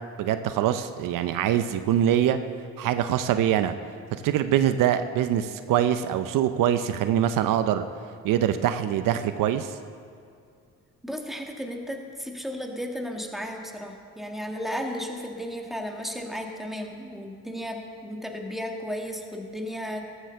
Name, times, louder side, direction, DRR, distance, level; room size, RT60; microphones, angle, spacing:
voice 1, 0.2-2.4 2.8-3.7 4.1-7.8 8.2-9.8, right 10 dB, 75° right, 10 dB, 0.6 m, -24 dB
voice 2, 11.0-20.0, equal, ahead, 2 dB, 1.7 m, -34 dB
13.0 x 7.9 x 6.8 m, 2.3 s
cardioid pair, 75°, 33 cm